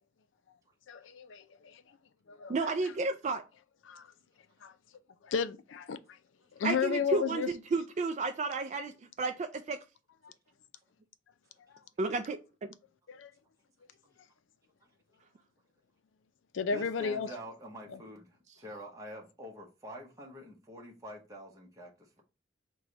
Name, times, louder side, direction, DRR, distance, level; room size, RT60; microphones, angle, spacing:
voice 1, 0.9-1.7 2.3-2.5 3.9-4.0 4.6-4.7 5.2-6.0 6.6-7.5 13.1-13.3 16.5-17.3 17.9-18.0, left 6 dB, 90° left, 0.4 m, -33 dB
voice 2, 2.5-3.4 6.6-8.9 9.2-9.8 12.0-12.7, right 3 dB, 40° right, 0.3 m, -32 dB
voice 3, 14.8-15.2 16.7-22.2, equal, 20° right, 0.8 m, -47 dB
4.7 x 2.2 x 3.8 m
head